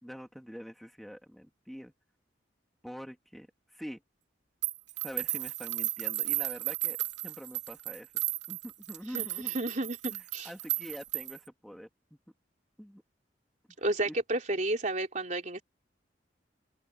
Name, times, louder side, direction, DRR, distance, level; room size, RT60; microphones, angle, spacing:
voice 1, 0.0-1.9 2.8-4.0 5.0-7.0 7.2-8.1 8.5-9.6 10.1-12.2 12.8-13.0 14.0-14.2, equal, ahead, 3.2 m, -45 dB
sound 1, 4.6-11.5, right 17 dB, 90° right, 2.6 m, -34 dB
voice 2, 9.1-10.5 13.8-15.6, right 2 dB, 45° right, 3.6 m, -32 dB
open air
head